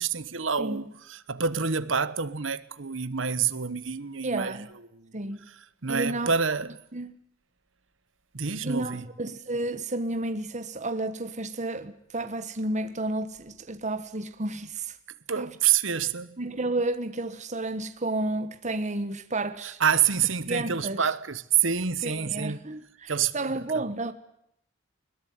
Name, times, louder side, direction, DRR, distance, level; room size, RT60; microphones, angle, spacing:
voice 1, 0.0-4.6 4.9-5.1 5.5-6.7 8.3-9.1 15.3-16.4 19.6-22.6 23.1-23.8, right 7 dB, 75° right, 1.2 m, -27 dB
voice 2, 4.2-4.7 5.1-5.5 5.9-6.3 6.9-7.2 8.6-14.9 15.4-15.5 16.4-19.8 20.5-21.0 22.0-24.1, right 2 dB, 35° right, 1.4 m, -31 dB
21.5 x 21.5 x 9.6 m
head